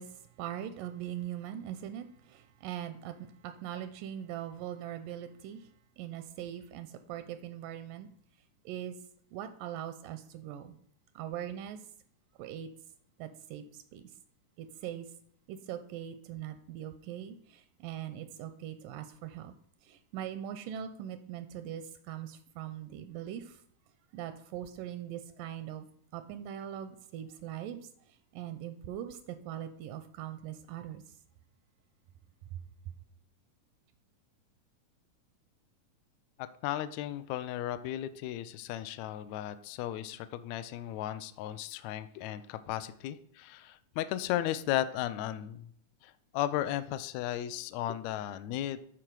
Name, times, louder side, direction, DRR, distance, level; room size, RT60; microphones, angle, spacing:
voice 1, 0.0-8.1 8.7-9.0 9.3-10.8 11.2-11.8 12.4-12.7 13.2-14.0 14.6-15.1 15.5-19.5 19.8-23.6 24.1-25.9 26.1-31.0 32.5-32.6, right 11 dB, 85° right, 9 dB, 2.2 m, -41 dB
voice 2, 36.4-45.7 46.0-48.8, left 12 dB, 80° left, 12 dB, 1.6 m, -35 dB
12.5 x 4.7 x 4.7 m, 0.63 s
omnidirectional pair, 3.8 m